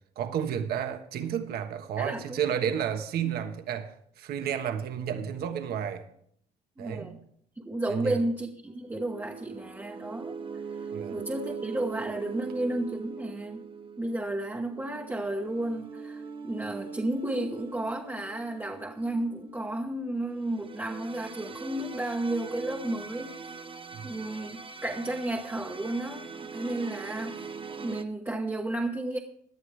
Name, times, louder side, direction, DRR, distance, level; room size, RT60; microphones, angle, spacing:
voice 1, 0.2-6.0 6.8-7.1 7.9-8.2 10.9-11.2 23.9-24.1, right 8 dB, 70° right, 1.4 m, -31 dB
voice 2, 2.0-2.4 6.8-7.2 7.5-10.4 10.7-13.6 14.0-23.4 24.0-27.5 27.8-29.2, right 1 dB, 10° right, 1.2 m, -32 dB
sound 1, 8.8-28.0, right 5 dB, 30° right, 1.0 m, -42 dB
17.5 x 11.0 x 3.3 m
cardioid pair, 110°, 17 cm